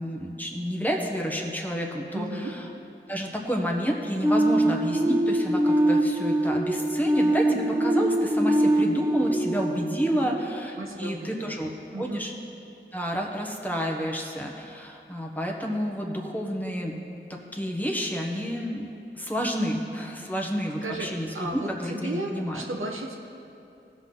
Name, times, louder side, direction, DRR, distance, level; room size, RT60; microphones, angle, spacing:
voice 1, 0.0-2.7 3.1-12.3 12.9-17.0 17.3-18.9 19.1-22.6, equal, 10° left, -1 dB, 1.3 m, -30 dB
voice 2, 2.1-2.5 10.2-10.4 10.7-11.6 11.9-12.3 20.2-20.5 20.8-21.1 21.3-23.2, right 2 dB, 85° right, 0 dB, 1.1 m, -34 dB
sound 1, 4.2-11.0, right 1 dB, 10° right, 0.6 m, -23 dB
17.0 x 5.8 x 4.0 m, 2.6 s
wide cardioid pair, 55°, 20 cm